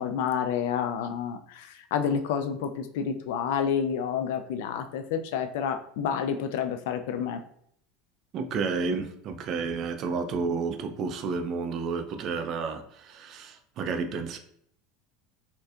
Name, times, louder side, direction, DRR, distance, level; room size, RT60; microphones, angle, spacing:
voice 1, 0.0-7.4, left 7 dB, 80° left, 0.3 m, -29 dB
voice 2, 8.3-14.4, right 4 dB, 40° right, 0.4 m, -31 dB
4.3 x 2.6 x 2.4 m
supercardioid pair, 145°, 0 cm